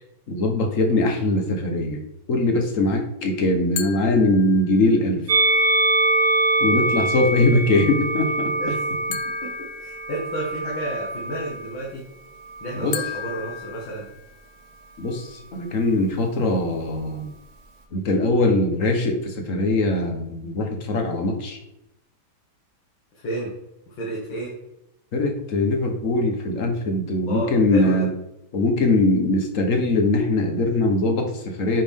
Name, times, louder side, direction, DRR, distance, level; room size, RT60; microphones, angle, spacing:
voice 1, 0.3-2.0 2.3-5.2 6.6-8.5 12.8-12.9 15.0-17.3 17.9-21.6 25.1-28.1 28.5-31.8, left 2 dB, 45° left, 3 dB, 1.3 m, -21 dB
sound 1, 3.8-5.1 9.1-10.6 12.9-14.6, left 12 dB, 90° left, 0.9 m, -36 dB
Musical instrument, 5.3-11.7 12.5-13.5, right 2 dB, 55° right, 1.4 m, -24 dB
voice 2, 9.1-9.5 9.8-12.0 12.6-14.1 23.1-23.5 23.9-24.5 27.2-28.0, right 1 dB, 65° left, -5 dB, 2.5 m, -31 dB
9.6 x 5.2 x 3.7 m, 0.86 s
omnidirectional pair, 2.4 m